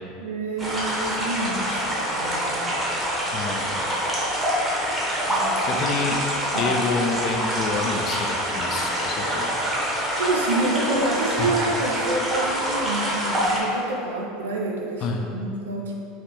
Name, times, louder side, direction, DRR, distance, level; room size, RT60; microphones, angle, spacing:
voice 1, 0.2-2.8 5.2-5.8 6.5-6.7 10.2-16.0, right 2 dB, 80° right, -1 dB, 0.4 m, -28 dB
sound 1, 0.6-13.6, equal, 15° right, 0.8 m, -26 dB
voice 2, 3.3-4.4 5.6-6.2 6.6-9.5 11.4-11.6 15.0-15.2, left 4 dB, 45° left, 2 dB, 0.4 m, -28 dB
3.2 x 2.4 x 2.9 m, 2.8 s
hypercardioid pair, 80°, 0 cm